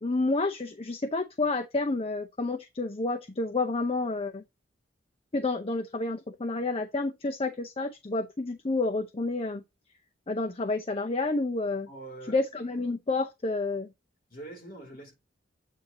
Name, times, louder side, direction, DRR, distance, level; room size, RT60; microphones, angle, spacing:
voice 1, 0.0-4.4 5.3-9.6 10.3-11.9 12.3-13.9, left 3 dB, 30° left, 0.6 m, -29 dB
voice 2, 11.9-12.4 14.3-15.2, right 2 dB, 50° left, 2.7 m, -44 dB
8.3 x 2.8 x 5.1 m
head